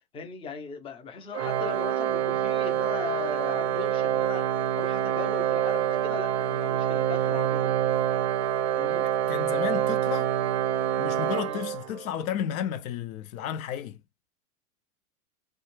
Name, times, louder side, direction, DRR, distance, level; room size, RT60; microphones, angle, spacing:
voice 1, 0.1-7.8 8.8-9.0 11.5-11.6, left 5 dB, 10° left, 0.5 m, -38 dB
Organ, 1.3-12.2, right 10 dB, 50° right, 0.5 m, -26 dB
voice 2, 9.3-10.3 11.0-14.0, left 9 dB, 65° left, 0.5 m, -32 dB
2.4 x 2.2 x 2.9 m
hypercardioid pair, 120°, 45 cm